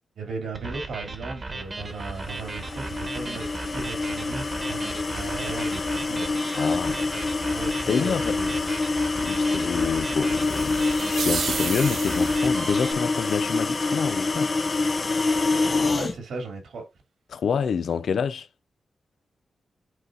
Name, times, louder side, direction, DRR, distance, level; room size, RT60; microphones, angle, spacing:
voice 1, 0.2-6.3 7.5-8.6 9.2-9.3 15.9-16.8, right 3 dB, 85° right, 2.6 m, -37 dB
sound 1, 0.5-12.9, right 2 dB, 35° right, 1.3 m, -36 dB
sound 2, 2.2-16.1, left 3 dB, 35° left, 0.8 m, -26 dB
voice 2, 6.5-7.0 7.9-8.4 9.2-14.6 17.3-18.5, left 6 dB, 70° left, 0.6 m, -28 dB
sound 3, 10.4-12.6, right 6 dB, 65° right, 0.7 m, -32 dB
11.5 x 4.1 x 2.6 m
wide cardioid pair, 125°, 0 cm